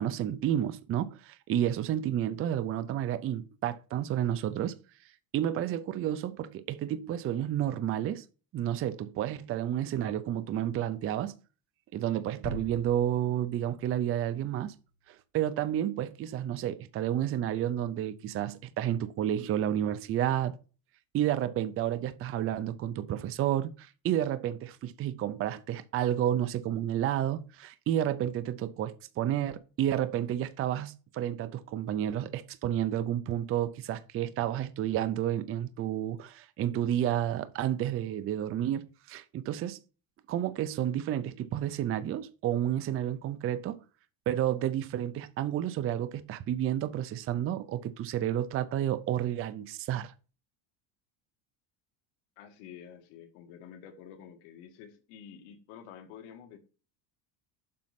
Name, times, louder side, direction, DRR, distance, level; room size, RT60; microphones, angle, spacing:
voice 1, 0.0-4.8 5.3-8.2 8.5-11.3 11.9-14.8 15.1-20.6 21.1-39.8 40.3-43.8 44.3-50.1, right 11 dB, 30° right, 0.5 m, -31 dB
sound 1, 12.4-14.9, right 1 dB, 70° right, 2.7 m, -44 dB
voice 2, 52.4-56.6, left 8 dB, 85° left, 1.8 m, -49 dB
7.6 x 5.3 x 5.8 m
cardioid pair, 155°, 47 cm